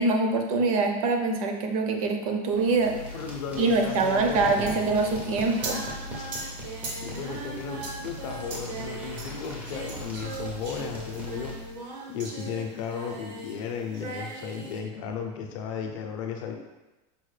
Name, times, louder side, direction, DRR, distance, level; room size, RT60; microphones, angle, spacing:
voice 1, 0.0-3.0 3.6-5.9, right 3 dB, 55° right, 4 dB, 0.5 m, -24 dB
sound 1, 2.5-11.9, left 1 dB, 5° right, 0.4 m, -40 dB
voice 2, 3.1-4.8 6.2-6.3 6.9-11.5 12.1-16.6, left 7 dB, 50° left, 3 dB, 0.5 m, -35 dB
Singing, 4.5-13.6 13.9-14.8, right 3 dB, 85° right, 0.9 m, -39 dB
5.3 x 2.1 x 3.2 m, 1.1 s
supercardioid pair, 175°, 21 cm